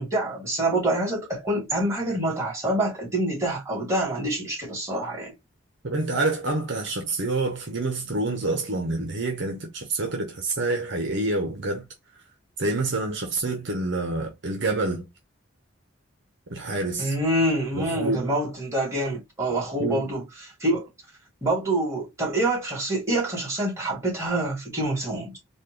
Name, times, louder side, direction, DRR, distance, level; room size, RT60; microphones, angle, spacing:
voice 1, 0.0-5.3 17.0-20.9 21.4-25.4, right 1 dB, 15° right, 2.2 m, -26 dB
voice 2, 5.8-11.8 12.6-15.1 16.5-17.1 17.7-18.3 19.8-20.1, right 2 dB, 60° right, 0.8 m, -27 dB
4.2 x 2.3 x 3.2 m
head